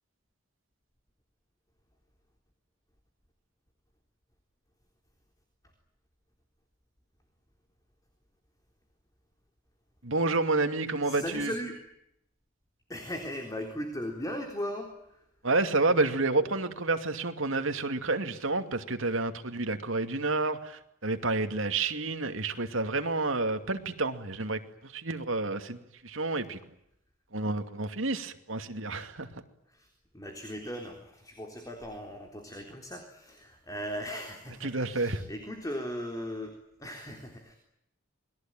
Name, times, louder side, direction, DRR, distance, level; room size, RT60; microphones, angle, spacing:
voice 1, 10.0-11.5 15.4-26.6 27.3-29.3 34.6-35.3, right 3 dB, 70° right, 7 dB, 2.5 m, -29 dB
voice 2, 11.0-11.8 12.9-15.3 29.7-37.6, equal, 15° left, 3 dB, 3.7 m, -38 dB
28.5 x 21.5 x 9.0 m, 0.79 s
head